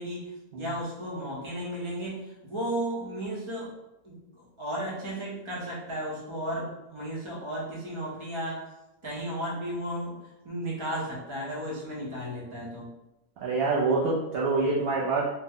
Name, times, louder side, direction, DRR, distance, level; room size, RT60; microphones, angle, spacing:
voice 1, 0.0-3.7 4.0-8.6 9.0-10.2 10.4-12.9, equal, 25° right, -5 dB, 0.8 m, -34 dB
voice 2, 13.4-15.3, right 3 dB, 65° right, -4 dB, 0.6 m, -26 dB
2.9 x 2.1 x 3.5 m, 0.97 s
omnidirectional pair, 1.4 m